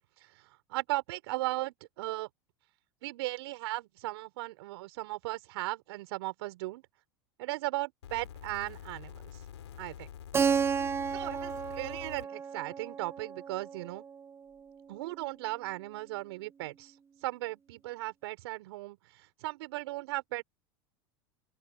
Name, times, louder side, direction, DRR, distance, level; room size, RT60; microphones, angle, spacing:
voice 1, 0.7-2.3 3.0-6.8 7.4-9.3 9.8-10.1 11.1-14.0 14.9-16.9 17.2-20.4, right 20 dB, 70° right, 5.4 m, -37 dB
sound 1, 8.0-12.3 13.2-13.3, left 10 dB, 85° left, 3.1 m, -47 dB
Keyboard (musical), 10.3-14.9, right 6 dB, 20° right, 0.5 m, -33 dB
open air
hypercardioid pair, 95°, 14 cm